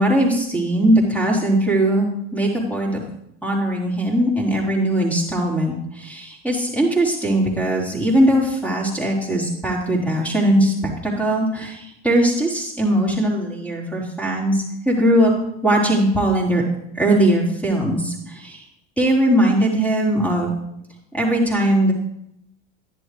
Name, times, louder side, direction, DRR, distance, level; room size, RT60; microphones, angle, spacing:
voice 1, 0.0-3.0 3.4-15.3 15.6-16.6 17.0-18.6 19.0-20.5 21.1-21.9, right 1 dB, 5° left, -2 dB, 3.9 m, -20 dB
11.0 x 10.5 x 3.4 m, 0.77 s
supercardioid pair, 90°, 33 cm